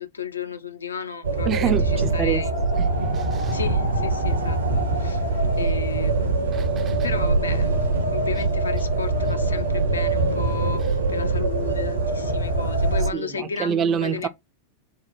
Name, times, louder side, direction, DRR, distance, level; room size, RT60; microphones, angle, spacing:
voice 1, 0.0-2.5 3.5-5.2 5.6-7.7 8.1-14.3, left 6 dB, 75° left, 0.4 m, -34 dB
sound 1, 1.2-13.1, right 2 dB, 75° right, 0.8 m, -23 dB
voice 2, 1.5-2.5 2.8-3.6 6.5-7.0 13.1-14.3, right 8 dB, 30° right, 0.4 m, -27 dB
3.3 x 2.1 x 4.1 m
figure-of-eight pair, 90°, 0 cm